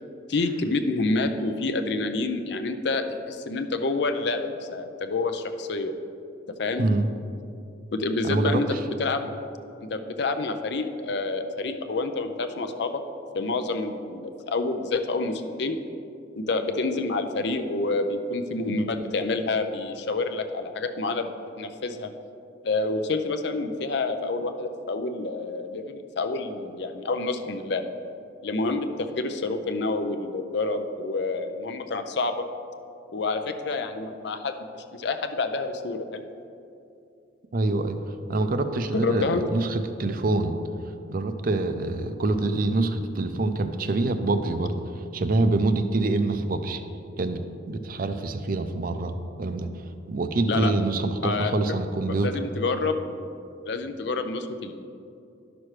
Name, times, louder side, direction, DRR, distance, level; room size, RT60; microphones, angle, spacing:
voice 1, 0.3-5.9 6.6-6.9 7.9-8.7 9.0-9.3 9.9-12.9 13.3-15.8 16.4-21.3 21.6-22.1 22.6-27.9 28.4-32.4 33.1-36.2 38.9-39.4 50.5-50.7 51.2-51.7 52.2-53.0 53.7-54.9, left 3 dB, 60° left, 7 dB, 0.5 m, -28 dB
voice 2, 8.2-8.8 37.5-38.0 38.3-40.6 41.1-44.7 45.1-46.8 47.2-49.7 50.1-52.3, right 2 dB, 50° right, 8 dB, 0.5 m, -25 dB
11.5 x 6.0 x 3.2 m, 2.6 s
head